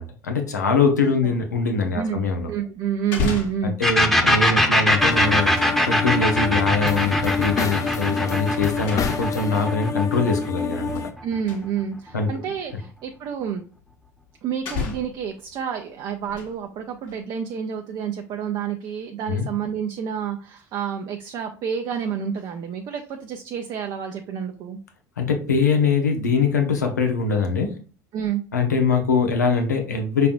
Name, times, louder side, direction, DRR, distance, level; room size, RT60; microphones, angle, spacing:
voice 1, 0.0-2.5 3.6-5.5 5.9-11.0 12.1-12.3 19.3-19.5 25.2-27.8 28.5-30.3, left 4 dB, 85° left, 4 dB, 0.8 m, -22 dB
voice 2, 1.9-3.8 11.2-13.6 14.4-24.8 28.1-28.4, right 8 dB, 50° right, 3 dB, 0.6 m, -29 dB
sound 1, 2.4-2.5 3.0-3.8 4.8-5.8 7.4-7.6 8.9-9.5 10.6-11.1 11.5-11.7 12.6-12.7 14.0-14.1 14.7-15.3 16.1-16.6 17.0-17.2, left 5 dB, 55° left, 1.5 m, -31 dB
sound 2, 3.8-11.3, left 1 dB, 5° left, 1.0 m, -21 dB
sound 3, 5.0-11.1, left 5 dB, 35° left, 0.6 m, -28 dB
5.7 x 3.4 x 2.5 m, 0.38 s
figure-of-eight pair, 65°, 9 cm